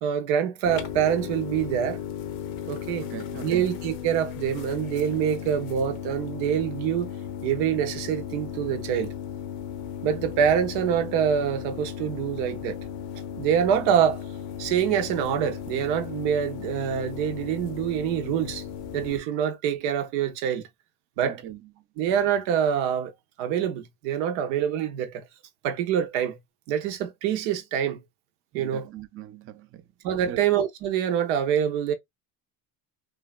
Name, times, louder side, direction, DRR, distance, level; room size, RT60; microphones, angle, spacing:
voice 1, 0.0-2.0 2.7-3.1 3.4-7.1 7.4-9.1 10.0-12.8 13.4-14.2 14.6-18.6 18.9-20.7 21.2-21.4 22.0-23.1 23.4-25.2 25.6-26.4 26.7-28.0 28.5-28.9 30.0-31.9, right 9 dB, 85° right, 0.8 m, -25 dB
sound 1, 0.7-19.2, left 9 dB, 80° left, 0.7 m, -36 dB
voice 2, 3.0-3.7 21.2-21.6 28.5-29.9 30.3-30.4, right 11 dB, 30° right, 0.4 m, -40 dB
3.2 x 2.3 x 2.3 m
supercardioid pair, 85°, 43 cm